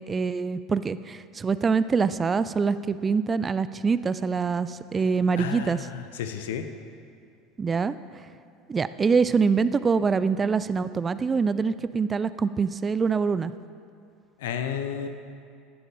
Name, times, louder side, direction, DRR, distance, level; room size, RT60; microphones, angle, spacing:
voice 1, 0.0-5.9 7.6-7.9 8.7-13.5, right 5 dB, 25° right, 14 dB, 0.4 m, -25 dB
voice 2, 5.4-6.6 14.4-15.1, left 8 dB, 70° left, 8 dB, 0.8 m, -32 dB
16.5 x 11.5 x 3.5 m, 2.5 s
figure-of-eight pair, 70°, 0 cm